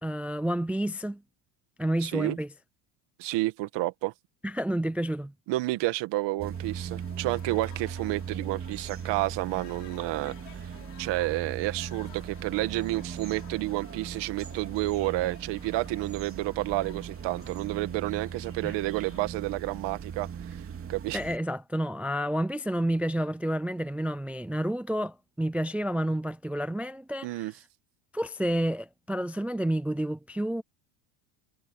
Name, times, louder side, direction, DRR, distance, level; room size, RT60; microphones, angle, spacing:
voice 1, 0.0-1.2 1.8-2.5 4.4-5.3 18.6-18.8 21.1-27.5 28.1-30.6, right 1 dB, 5° right, 0.4 m, -30 dB
voice 2, 2.0-2.4 3.2-4.1 5.5-10.3 10.6-10.7 11.0-20.3 20.9-21.2 27.2-27.5, right 18 dB, 60° right, 2.0 m, -30 dB
sound 1, 6.4-21.4, right 7 dB, 25° right, 2.9 m, -39 dB
sound 2, 6.5-19.3, left 25 dB, 90° left, 5.9 m, -54 dB
cardioid pair, 130°, 48 cm